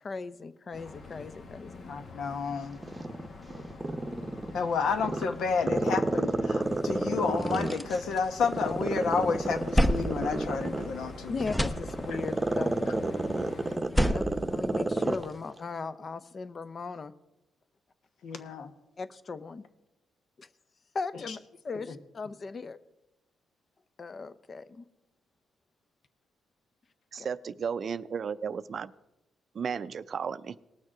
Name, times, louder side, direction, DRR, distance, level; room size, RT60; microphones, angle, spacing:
voice 1, 0.0-1.9 11.3-12.7 14.1-17.1 19.0-19.6 20.4-20.5 20.9-21.4 21.6-22.8 24.0-24.8 27.2-27.3, left 4 dB, 40° left, 0.7 m, -38 dB
sound 1, 0.7-13.8, left 3 dB, 60° left, 1.6 m, -46 dB
voice 2, 1.9-2.8 4.5-11.4 12.1-12.2 13.1-13.3 13.7-14.0 18.2-18.7 21.3-21.4 21.9-22.0, left 5 dB, 75° left, 1.1 m, -31 dB
Growling, 2.8-4.6 5.0-8.0 8.4-15.3 15.6-15.7, right 2 dB, 20° right, 0.9 m, -29 dB
sound 2, 6.8-6.9 7.2-8.9 9.3-11.1 11.4-12.4 13.7-15.4, equal, 10° left, 0.8 m, -30 dB
voice 3, 27.1-28.9 29.5-30.6, right 6 dB, 55° right, 0.4 m, -34 dB
19.0 x 6.4 x 4.9 m
cardioid pair, 80°, 0 cm